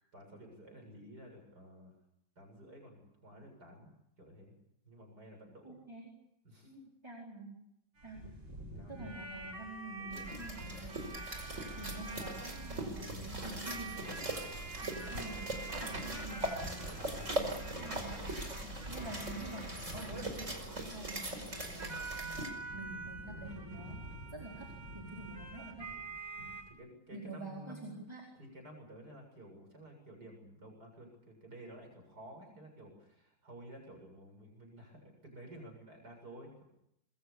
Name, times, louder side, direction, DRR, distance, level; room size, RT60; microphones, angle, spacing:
voice 1, 0.1-1.9 2.4-3.9 4.2-4.5 4.8-5.8 6.4-6.9 8.7-9.1 9.8-10.4 17.2-17.5 21.6-21.8 22.9-23.0 25.1-25.2 26.3-28.0 28.4-36.6, right 1 dB, 55° right, 2 dB, 8.0 m, -53 dB
voice 2, 5.6-6.1 7.0-7.5 8.0-8.2 8.9-11.2 11.8-14.4 14.8-16.9 17.4-18.2 18.6-22.4 22.7-24.0 24.3-25.9 27.1-28.3, right 2 dB, 15° right, 0 dB, 4.5 m, -47 dB
sound 1, 8.0-26.7, right 2 dB, 85° right, 7.2 m, -46 dB
sound 2, 10.1-22.5, right 1 dB, 35° right, 5.6 m, -40 dB
27.0 x 22.5 x 7.0 m, 0.79 s
omnidirectional pair, 2.1 m